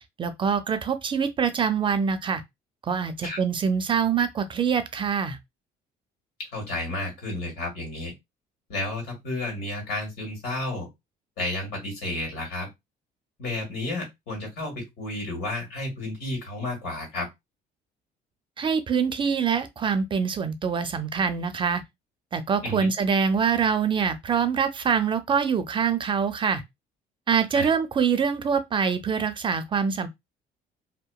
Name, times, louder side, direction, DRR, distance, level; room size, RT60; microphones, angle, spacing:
voice 1, 0.2-2.4 2.8-5.4 18.6-21.8 22.3-26.6 27.3-30.1, right 6 dB, 30° right, 0.4 m, -24 dB
voice 2, 6.5-8.1 8.7-10.9 11.4-12.7 13.4-17.3 22.6-22.9 27.5-27.7, left 2 dB, 85° left, 1.8 m, -32 dB
2.8 x 2.2 x 2.2 m
cardioid pair, 110°, 17 cm